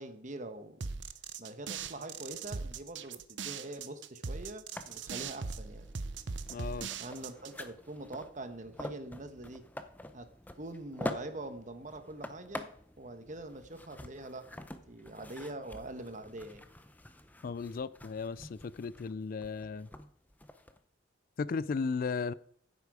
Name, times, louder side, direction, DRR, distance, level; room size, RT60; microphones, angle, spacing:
voice 1, 0.0-5.9 7.0-9.6 10.1-16.7, right 2 dB, 40° right, 1.2 m, -44 dB
sound 1, 0.8-7.6, right 5 dB, 70° right, 0.7 m, -40 dB
sound 2, 4.7-20.8, left 1 dB, 10° left, 0.6 m, -47 dB
voice 2, 6.5-6.9 17.4-19.9 21.4-22.3, left 4 dB, 50° left, 0.4 m, -35 dB
14.5 x 8.2 x 4.9 m
head